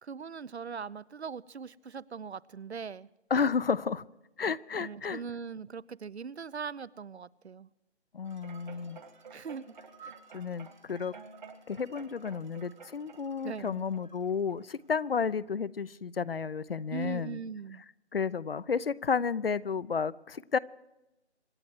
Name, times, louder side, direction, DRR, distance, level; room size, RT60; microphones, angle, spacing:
voice 1, 0.0-3.1 4.8-7.7 9.3-9.6 10.0-10.1 13.4-13.8 16.9-17.8, right 6 dB, 70° right, 21 dB, 0.7 m, -40 dB
voice 2, 3.3-4.0 4.4-5.2 8.1-9.0 10.3-11.1 11.7-17.4 18.1-20.6, left 6 dB, 55° left, 19 dB, 0.6 m, -32 dB
sound 1, 8.2-14.8 15.3-15.4, right 5 dB, 40° right, 1.7 m, -51 dB
26.0 x 10.5 x 4.6 m, 0.95 s
figure-of-eight pair, 155°, 34 cm